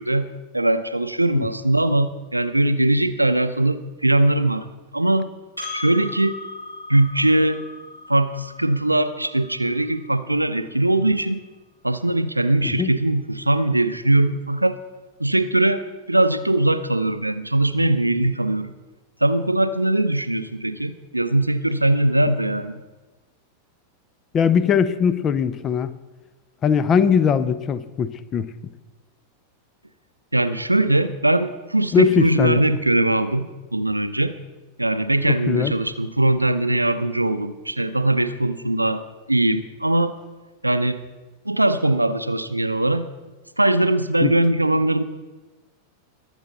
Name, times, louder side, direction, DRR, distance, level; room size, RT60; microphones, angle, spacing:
voice 1, 0.0-4.7 4.9-5.3 5.7-6.4 6.9-7.6 8.1-11.4 11.8-14.8 15.2-15.8 16.1-18.7 19.2-22.8 30.3-34.4 34.8-39.0 39.3-40.1 40.6-41.0 41.5-43.1 43.6-45.0, right 1 dB, 85° right, 12 dB, 0.6 m, -21 dB
Percussion, 5.6-10.4, left 2 dB, 90° left, 4.6 m, -38 dB
voice 2, 24.3-25.9 26.6-28.5 31.9-32.6 35.2-35.7 44.2-44.3, left 7 dB, 25° left, 15 dB, 0.7 m, -20 dB
21.0 x 8.0 x 4.0 m, 1.2 s
figure-of-eight pair, 90°, 0 cm